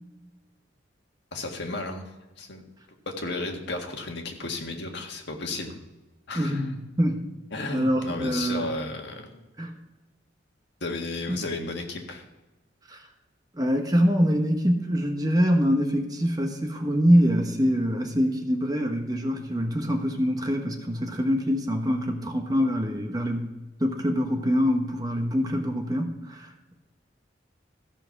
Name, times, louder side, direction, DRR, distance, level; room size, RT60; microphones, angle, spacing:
voice 1, 1.3-2.0 2.4-2.6 3.1-5.8 6.3-6.6 7.5-9.4 10.8-12.3, left 2 dB, 65° left, 2 dB, 1.7 m, -33 dB
voice 2, 6.3-7.2 7.7-8.7 9.6-9.7 11.3-11.5 12.9-13.0 13.5-23.5 23.8-26.7, equal, 20° right, 3 dB, 1.2 m, -24 dB
14.5 x 6.0 x 5.9 m, 1.1 s
head